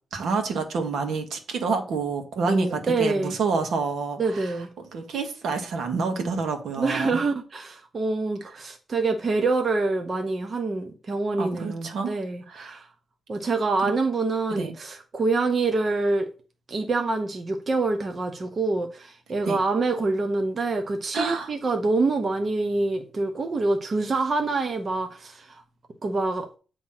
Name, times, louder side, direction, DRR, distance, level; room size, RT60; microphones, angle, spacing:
voice 1, 0.1-4.6 4.9-7.2 11.4-12.1 12.5-12.8 14.5-14.7 19.4-19.6 21.1-21.5, right 4 dB, 75° right, 1.3 m, -28 dB
voice 2, 2.5-3.4 4.2-4.7 6.8-12.9 13.3-16.3 16.7-25.6 26.0-26.5, right 3 dB, 35° right, 0.8 m, -26 dB
8.6 x 3.1 x 5.6 m
wide cardioid pair, 155°, 0 cm